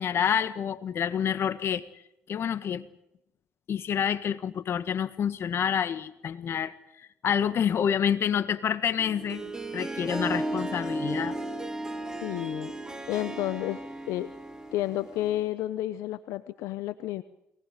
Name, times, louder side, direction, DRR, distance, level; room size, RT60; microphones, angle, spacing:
voice 1, 0.0-1.9 2.3-2.8 3.7-11.4, left 8 dB, 55° left, 13 dB, 1.6 m, -28 dB
Harp, 9.0-15.5, right 1 dB, 15° right, 3.8 m, -35 dB
voice 2, 12.2-12.7 13.1-13.8 14.1-14.3 14.7-17.2, left 14 dB, 80° left, 14 dB, 0.9 m, -31 dB
22.5 x 19.5 x 9.2 m, 0.81 s
supercardioid pair, 70°, 5 cm